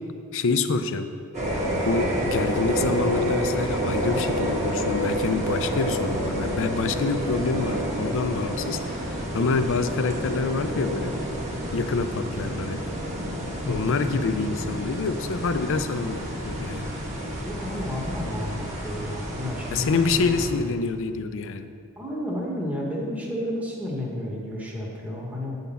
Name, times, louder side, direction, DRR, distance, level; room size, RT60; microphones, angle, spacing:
voice 1, 0.3-1.1 1.8-11.1 11.7-12.8 13.6-16.9 19.7-21.7, left 4 dB, 60° left, 9 dB, 0.5 m, -26 dB
sound 1, 1.3-20.5, right 1 dB, 35° right, 1.6 m, -29 dB
voice 2, 13.7-14.0 17.4-20.6 22.0-25.6, left 1 dB, 5° right, -3 dB, 1.2 m, -32 dB
9.6 x 3.9 x 6.9 m, 2.4 s
head